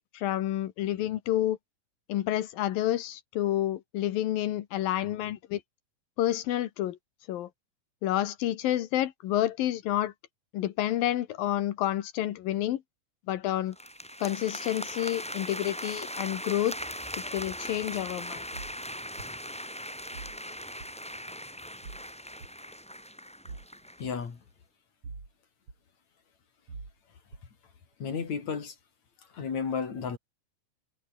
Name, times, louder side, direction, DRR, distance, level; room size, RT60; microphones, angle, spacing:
voice 1, 0.1-1.6 2.1-5.6 6.2-7.0 7.3-7.5 8.0-10.1 10.5-12.8 13.3-13.8 14.2-16.8 17.2-18.5, left 13 dB, 85° left, 3.1 m, -29 dB
sound 1, 13.7-24.1, equal, ahead, 4.2 m, -39 dB
sound 2, 18.5-18.8 19.2-19.3 20.1-20.4 20.8-20.9 21.8-22.0 22.4-22.5 23.5-23.7 24.0-24.1 25.0-25.3 25.7-25.8 26.7-26.9 27.3-27.5, right 4 dB, 40° right, 5.8 m, -43 dB
voice 2, 24.0-24.4 28.0-28.7 29.3-30.2, left 6 dB, 55° left, 4.7 m, -32 dB
omnidirectional pair, 4.0 m